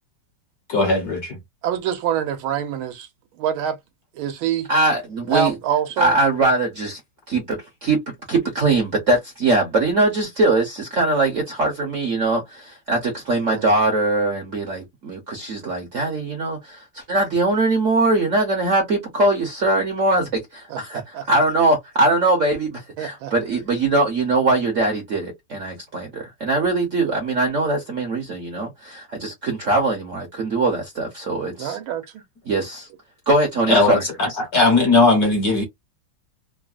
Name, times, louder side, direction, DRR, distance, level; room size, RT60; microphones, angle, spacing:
voice 1, 0.7-1.4 33.7-35.6, left 3 dB, 55° left, 1.2 m, -18 dB
voice 2, 1.6-3.1 3.4-3.8 4.1-4.7 5.3-6.2 13.5-13.6 20.7-21.2 23.0-23.3 31.6-32.2, right 9 dB, 75° right, 1.5 m, -25 dB
voice 3, 4.7-5.5 6.0-7.0 7.3-8.0 8.3-21.0 21.3-31.8 32.5-32.9 33.3-34.0, right 2 dB, 55° right, 0.9 m, -21 dB
3.8 x 2.0 x 2.4 m
omnidirectional pair, 2.4 m